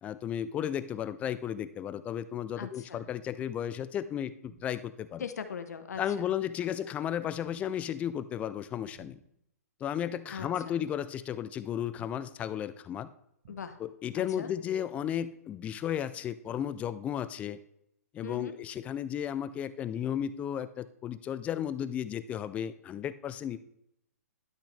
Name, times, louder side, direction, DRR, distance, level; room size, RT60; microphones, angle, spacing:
voice 1, 0.0-5.2 6.0-9.2 9.8-13.1 13.8-17.6 18.1-23.6, left 10 dB, 15° left, 15 dB, 0.3 m, -34 dB
voice 2, 2.6-3.0 5.2-6.2 6.6-6.7 10.3-10.7 13.5-13.8 14.1-14.5 18.2-18.6, left 6 dB, 85° left, 9 dB, 1.1 m, -40 dB
sound 1, 2.9-3.4 4.4-4.9 5.9-6.4 7.4-7.9 8.9-9.4 10.4-10.9 11.9-12.4 13.4-13.9 14.9-15.4 16.4-16.9, right 9 dB, 50° right, 1.2 m, -58 dB
11.5 x 6.1 x 3.3 m, 0.77 s
hypercardioid pair, 150°, 9 cm